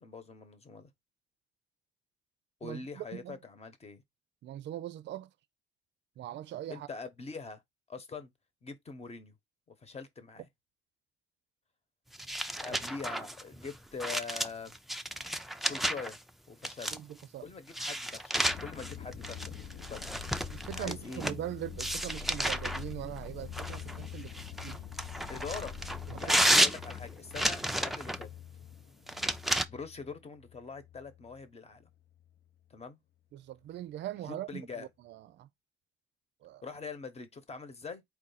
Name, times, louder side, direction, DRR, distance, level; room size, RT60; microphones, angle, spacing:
voice 1, 0.0-0.9 2.6-4.0 6.7-7.6 7.9-8.3 8.6-9.3 9.7-10.5 12.6-14.7 15.6-16.2 16.5-16.9 17.4-19.5 19.9-20.1 20.8-21.2 25.3-28.3 29.7-31.9 32.7-33.0 34.3-34.9 36.6-38.0, left 4 dB, 30° left, 1.1 m, -43 dB
voice 2, 2.6-3.4 4.4-5.3 6.2-6.9 12.7-12.8 16.9-17.5 20.5-24.8 26.1-26.4 29.2-29.3 33.3-35.5 36.4-36.6, right 12 dB, 65° right, 0.4 m, -41 dB
sound 1, 12.1-16.2 16.6-17.2 17.7-21.4 21.8-22.8 23.5-28.3 29.1-29.6, right 1 dB, ahead, 0.4 m, -32 dB
sound 2, 18.4-31.5 31.8-32.4, left 8 dB, 55° left, 0.7 m, -45 dB
4.6 x 2.4 x 4.0 m
cardioid pair, 90°, 20 cm